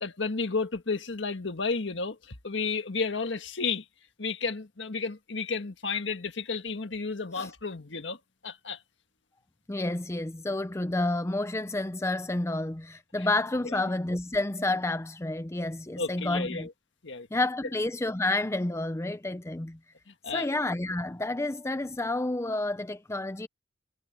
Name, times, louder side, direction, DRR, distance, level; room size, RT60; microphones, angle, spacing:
voice 1, 0.0-3.8 4.2-8.2 8.4-8.8 13.7-13.8 16.0-16.7 17.0-17.3 20.2-20.5, left 4 dB, 75° left, 1.6 m, -32 dB
voice 2, 9.7-16.7 17.3-19.8 20.3-23.5, left 2 dB, 15° left, 0.6 m, -30 dB
head